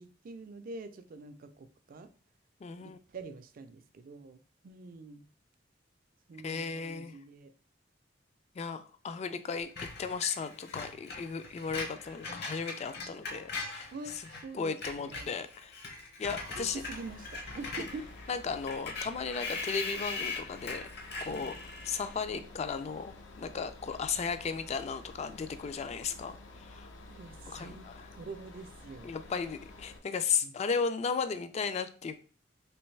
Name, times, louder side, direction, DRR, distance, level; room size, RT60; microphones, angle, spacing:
voice 1, 0.0-2.1 2.8-5.2 6.3-7.5 13.9-15.4 16.2-18.1 27.1-29.2 30.4-30.6, right 3 dB, 50° right, 10 dB, 0.4 m, -46 dB
voice 2, 2.6-3.0 6.4-7.2 8.6-13.9 14.5-15.7 16.2-16.8 18.3-20.9 21.2-26.9 27.5-28.1 29.0-32.2, left 5 dB, 35° left, 11 dB, 0.3 m, -35 dB
Screech, 9.8-14.4 14.7-22.2, left 4 dB, 60° left, 0.9 m, -41 dB
sound 1, 16.2-30.0, left 2 dB, 85° left, 0.6 m, -51 dB
3.3 x 3.0 x 3.2 m, 0.40 s
head